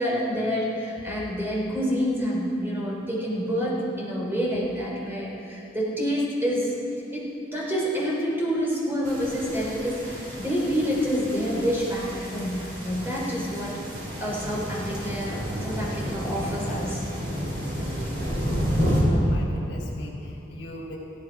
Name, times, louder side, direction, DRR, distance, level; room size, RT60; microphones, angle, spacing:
voice 1, 0.0-6.7 7.1-13.8 14.2-17.0, equal, 10° right, -5 dB, 3.9 m, -28 dB
sound 1, 9.0-19.0, equal, 55° right, 4.6 m, -31 dB
voice 2, 19.1-21.0, left 1 dB, 70° left, -3 dB, 4.1 m, -40 dB
17.5 x 16.0 x 4.8 m, 2.6 s
head